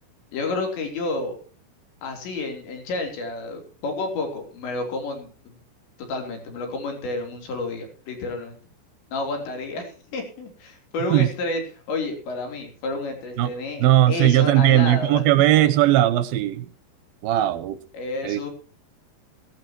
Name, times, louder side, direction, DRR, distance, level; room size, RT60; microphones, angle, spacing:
voice 1, 0.3-1.3 2.0-5.6 6.0-8.6 9.1-15.7 17.9-18.5, left 2 dB, 75° left, 5.7 m, -30 dB
voice 2, 13.8-16.7 17.2-17.8 18.2-18.4, right 13 dB, 75° right, 2.3 m, -18 dB
17.0 x 16.5 x 3.0 m
omnidirectional pair, 5.2 m